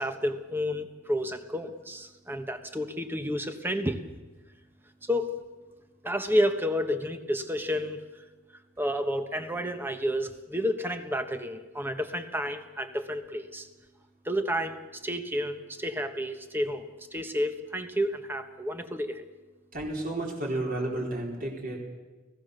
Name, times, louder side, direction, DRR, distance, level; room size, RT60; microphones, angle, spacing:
voice 1, 0.0-4.0 5.0-5.4 6.0-8.0 8.8-13.7 14.2-19.3, equal, 10° right, 7 dB, 1.2 m, -30 dB
voice 2, 19.7-21.8, right 1 dB, 45° right, -1 dB, 4.1 m, -32 dB
29.5 x 17.5 x 6.7 m, 1.2 s
head